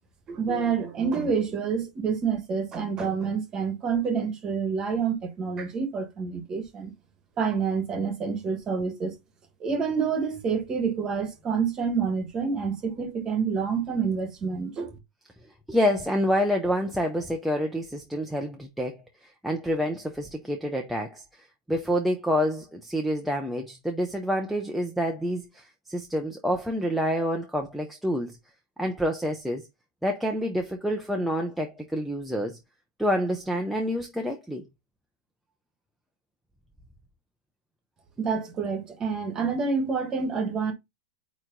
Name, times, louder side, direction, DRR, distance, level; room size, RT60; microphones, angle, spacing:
voice 1, 0.3-6.9 7.4-9.2 9.6-15.0 38.2-40.7, right 5 dB, 15° right, 1.2 m, -28 dB
voice 2, 15.7-19.0 19.4-21.2 21.7-28.4 28.8-29.7 30.0-32.6 33.0-34.7, equal, ahead, 0.5 m, -27 dB
8.9 x 3.0 x 3.8 m
supercardioid pair, 175°, 4 cm